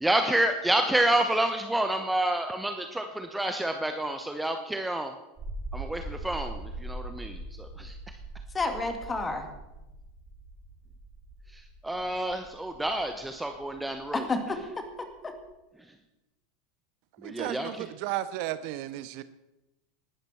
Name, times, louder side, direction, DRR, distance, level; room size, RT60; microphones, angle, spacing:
voice 1, 0.0-5.1 5.7-8.0 11.5-14.2 17.2-17.8, right 1 dB, 5° right, 1.0 m, -29 dB
sound 1, 5.4-15.5, right 2 dB, 30° right, 5.4 m, -42 dB
voice 2, 8.5-9.5 14.1-15.3, left 3 dB, 20° left, 2.3 m, -31 dB
voice 3, 17.2-19.2, right 14 dB, 50° right, 0.6 m, -34 dB
19.0 x 12.0 x 4.4 m
figure-of-eight pair, 80°, 0 cm